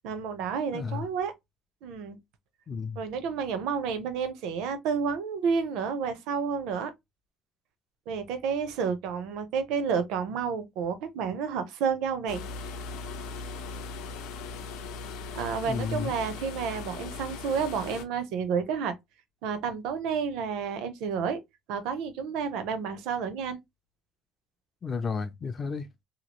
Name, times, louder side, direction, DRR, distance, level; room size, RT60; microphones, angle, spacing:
voice 1, 0.0-1.3 1.8-2.2 3.0-6.9 8.1-12.4 15.4-18.9 19.4-21.4 21.7-23.6, right 6 dB, 75° right, 0.6 m, -30 dB
voice 2, 0.7-1.1 2.7-3.0 15.7-16.1 24.8-25.9, left 5 dB, 25° left, 0.3 m, -32 dB
sound 1, 12.3-18.0, left 4 dB, 85° left, 0.6 m, -39 dB
2.9 x 2.4 x 2.9 m
cardioid pair, 160°, 0 cm